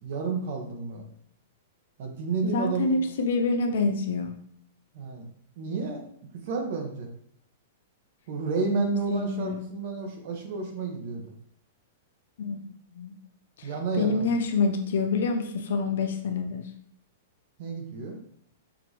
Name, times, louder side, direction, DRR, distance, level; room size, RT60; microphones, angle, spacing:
voice 1, 0.0-1.0 2.0-2.9 4.9-5.2 5.6-6.0 6.4-7.1 8.3-11.3 13.6-14.4 17.6-18.2, right 5 dB, 55° right, 3 dB, 1.0 m, -31 dB
voice 2, 2.5-4.3 8.7-9.7 12.4-12.6 12.9-13.1 13.6-13.7 14.0-16.6, left 3 dB, 75° left, 5 dB, 0.6 m, -27 dB
6.0 x 2.5 x 3.1 m, 0.67 s
hypercardioid pair, 140°, 0 cm